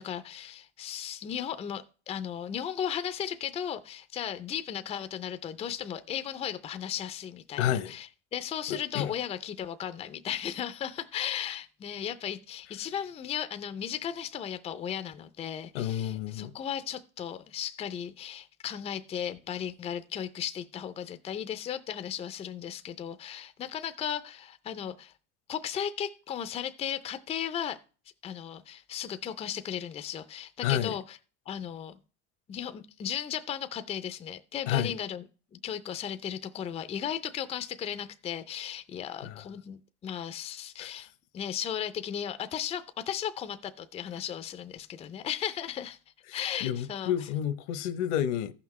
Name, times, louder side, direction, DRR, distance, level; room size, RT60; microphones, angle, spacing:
voice 1, 0.0-25.1 25.5-27.8 28.2-31.2 31.5-32.0 32.5-35.2 35.6-41.1 41.3-46.0 46.3-47.1, left 9 dB, 20° left, 0.4 m, -36 dB
voice 2, 7.6-7.9 8.7-9.1 15.7-16.5 30.6-30.9 34.7-34.9 39.2-39.4 40.8-40.9 46.3-48.5, left 10 dB, 75° left, 1.0 m, -30 dB
14.5 x 5.8 x 3.1 m
supercardioid pair, 140°, 35 cm